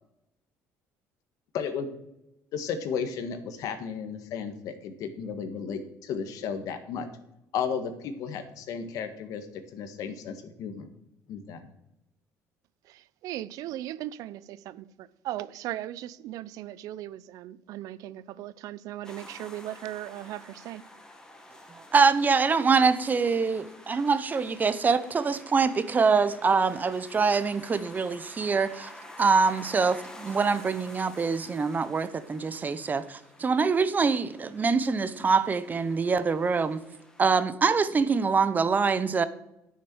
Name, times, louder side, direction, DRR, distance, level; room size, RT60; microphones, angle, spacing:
voice 1, 1.5-1.9 2.5-7.1 7.5-9.5 9.7-10.9 11.3-11.6, left 6 dB, 70° left, 1.6 m, -34 dB
voice 2, 13.2-20.8, right 13 dB, 70° right, 0.5 m, -38 dB
sound 1, 19.0-37.2, left 1 dB, 10° left, 1.9 m, -49 dB
voice 3, 21.8-28.9 29.2-36.8 37.2-39.2, right 5 dB, 30° right, 0.8 m, -24 dB
10.0 x 6.6 x 6.2 m
cardioid pair, 105°, 6 cm